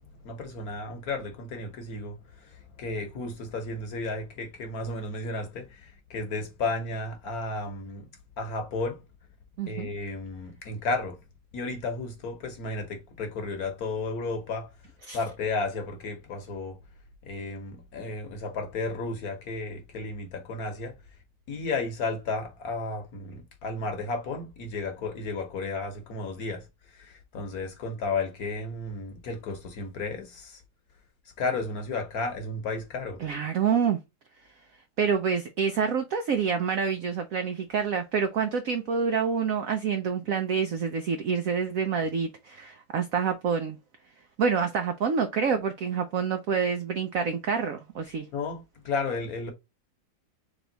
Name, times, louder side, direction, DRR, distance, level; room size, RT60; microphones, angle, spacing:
voice 1, 0.2-8.1 8.4-9.0 9.7-11.2 11.5-14.7 15.1-16.8 17.2-21.0 21.5-30.6 31.4-33.2 48.3-49.5, left 3 dB, 55° left, 1.2 m, -33 dB
voice 2, 9.6-9.9 15.1-15.2 33.2-34.0 35.0-43.8 44.4-48.3, right 6 dB, 80° right, 0.7 m, -27 dB
3.5 x 3.4 x 3.8 m
omnidirectional pair, 2.1 m